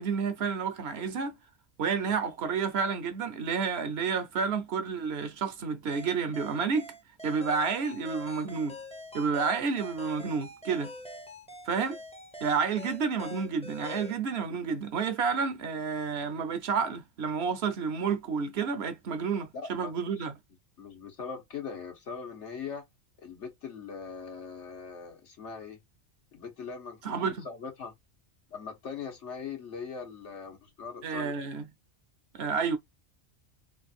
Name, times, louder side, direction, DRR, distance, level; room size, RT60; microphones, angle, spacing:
voice 1, 0.0-1.4 1.8-6.9 7.2-8.8 9.1-10.9 11.7-12.0 12.4-20.3 27.0-27.5 31.0-31.7 32.3-32.8, right 5 dB, 65° right, 0.9 m, -30 dB
sound 1, 5.9-14.2, left 2 dB, 5° left, 0.5 m, -45 dB
voice 2, 19.5-20.2 20.8-22.8 23.2-25.8 26.3-27.9 28.5-31.4, left 6 dB, 80° left, 1.4 m, -41 dB
3.3 x 2.4 x 4.1 m
omnidirectional pair, 1.2 m